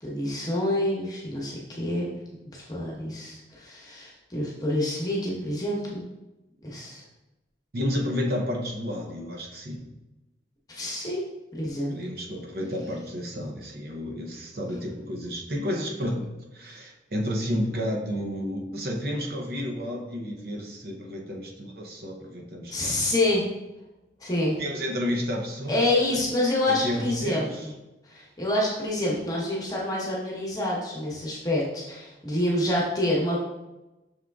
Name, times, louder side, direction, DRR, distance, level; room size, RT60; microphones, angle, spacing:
voice 1, 0.0-2.1 2.5-6.0 6.6-7.0 10.7-11.2 11.5-11.9 22.7-23.4 24.2-24.6 25.7-27.7 28.0-33.4, left 1 dB, 20° left, -4 dB, 1.0 m, -27 dB
voice 2, 7.7-9.9 11.9-16.3 16.5-22.9 24.6-26.2 26.7-27.7, equal, 55° right, 0 dB, 0.7 m, -31 dB
6.2 x 3.6 x 2.3 m, 1.0 s
head